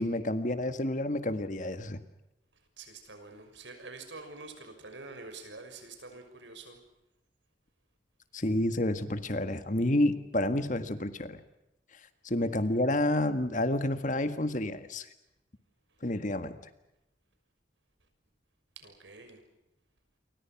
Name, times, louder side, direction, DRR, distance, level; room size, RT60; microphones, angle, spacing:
voice 1, 0.0-2.0 8.3-11.4 12.2-15.1 16.0-16.6, left 1 dB, 45° left, 10 dB, 1.7 m, -29 dB
voice 2, 2.5-6.8 18.8-19.4, right 3 dB, 85° right, 7 dB, 6.3 m, -47 dB
29.0 x 24.5 x 6.0 m, 0.90 s
head